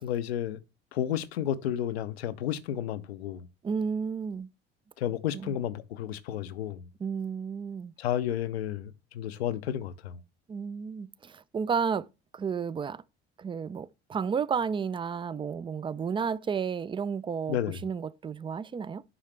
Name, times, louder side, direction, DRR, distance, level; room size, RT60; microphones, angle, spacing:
voice 1, 0.0-0.6 0.9-3.5 5.0-6.8 8.0-10.1 17.5-17.8, left 10 dB, 80° left, 0.6 m, -32 dB
voice 2, 3.6-4.5 5.3-5.6 7.0-7.9 10.5-12.1 12.3-13.0 13.4-19.0, right 6 dB, 15° right, 0.4 m, -32 dB
9.8 x 5.6 x 3.3 m
figure-of-eight pair, 55°, 31 cm